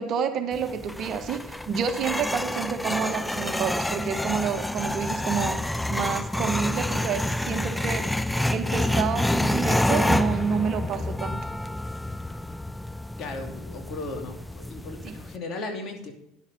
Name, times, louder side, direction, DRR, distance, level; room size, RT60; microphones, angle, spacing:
voice 1, 0.0-5.6 5.9-11.4 15.0-15.1, right 7 dB, 50° right, 8 dB, 1.3 m, -29 dB
sound 1, 0.5-15.4, left 1 dB, 5° left, 0.3 m, -28 dB
voice 2, 13.2-16.1, left 2 dB, 50° left, 3 dB, 2.6 m, -36 dB
10.5 x 7.3 x 5.4 m, 0.81 s
hypercardioid pair, 80°, 0 cm